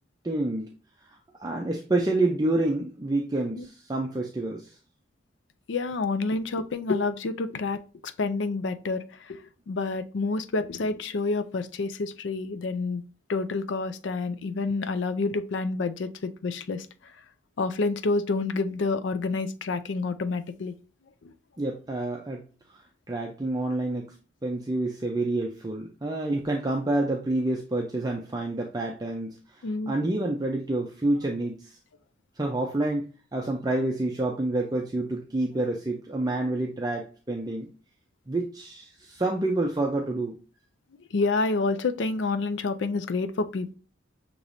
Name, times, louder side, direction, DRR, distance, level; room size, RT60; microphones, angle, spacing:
voice 1, 0.2-0.7 1.4-4.7 21.6-22.4 22.7-22.8 23.1-24.1 24.4-31.8 32.4-37.7 38.3-40.4, right 2 dB, 20° right, 0.5 m, -28 dB
voice 2, 5.7-9.4 9.7-13.0 13.3-16.9 17.6-20.7 29.6-29.9 41.1-43.7, left 3 dB, 75° left, 0.4 m, -28 dB
6.5 x 3.0 x 2.6 m
head